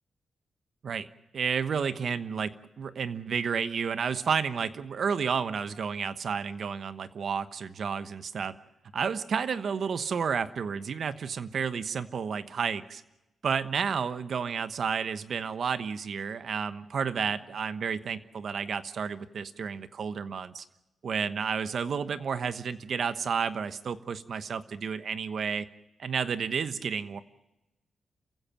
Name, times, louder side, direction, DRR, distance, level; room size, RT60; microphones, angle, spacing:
voice 1, 1.3-8.6 8.9-13.0 13.4-20.6 21.0-25.7 26.0-27.2, right 6 dB, 60° right, 12 dB, 1.1 m, -31 dB
28.5 x 15.5 x 7.6 m, 0.96 s
wide cardioid pair, 130°, 0 cm